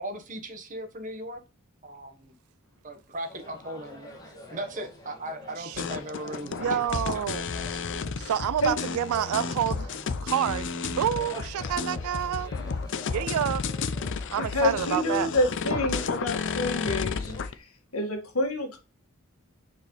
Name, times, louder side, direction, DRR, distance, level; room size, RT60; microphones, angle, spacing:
voice 1, 0.0-1.4 1.8-2.3 2.8-4.1 4.5-7.9, right 1 dB, 35° right, 1.2 m, -38 dB
sound 1, 3.3-17.4, equal, 20° left, 1.9 m, -46 dB
sound 2, 5.8-17.5, left 5 dB, 55° left, 0.5 m, -32 dB
voice 2, 6.4-7.4 8.2-12.5 13.1-13.6 14.3-15.3, right 10 dB, 80° right, 0.3 m, -28 dB
voice 3, 14.4-17.3 17.9-18.8, left 1 dB, 80° left, 1.9 m, -27 dB
6.6 x 5.0 x 3.2 m
head